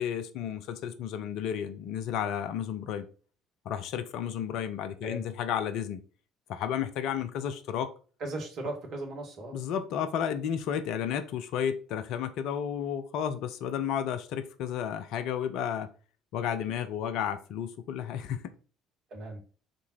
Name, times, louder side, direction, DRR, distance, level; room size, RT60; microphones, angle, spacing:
voice 1, 0.0-3.0 3.6-6.0 6.5-7.9 9.5-15.9 16.3-18.4, left 9 dB, 60° left, 10 dB, 0.7 m, -32 dB
voice 2, 8.2-9.6 19.1-19.4, right 2 dB, 50° right, 2 dB, 1.9 m, -37 dB
5.3 x 4.0 x 4.4 m, 0.40 s
figure-of-eight pair, 55°, 0 cm